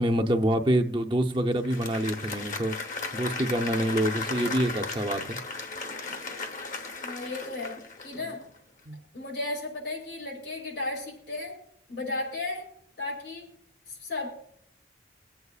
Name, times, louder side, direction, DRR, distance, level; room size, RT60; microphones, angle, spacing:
voice 1, 0.0-2.8 3.1-5.4 8.9-9.0, right 1 dB, 25° right, 0.5 m, -26 dB
Applause, 1.5-8.5, left 3 dB, 45° left, 1.0 m, -36 dB
voice 2, 7.0-7.7 8.0-8.4 9.1-11.6 11.9-12.7 13.0-13.5 13.9-14.4, left 2 dB, 85° left, 5.2 m, -34 dB
24.0 x 8.1 x 2.4 m
head